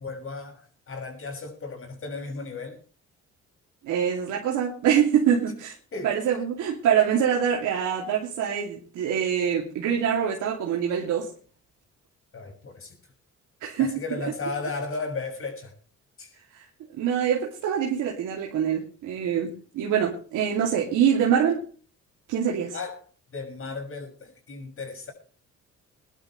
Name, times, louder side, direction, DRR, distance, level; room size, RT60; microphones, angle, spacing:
voice 1, 0.0-2.8 5.9-6.1 12.3-12.9 13.8-15.7 16.2-16.3 22.7-23.0 23.3-25.1, left 3 dB, 45° left, 6.4 m, -35 dB
voice 2, 3.8-5.7 6.0-11.3 13.6-14.3 16.9-21.6 22.3-22.7, right 8 dB, 90° right, 2.7 m, -25 dB
23.0 x 11.5 x 3.2 m
cardioid pair, 90°, 30 cm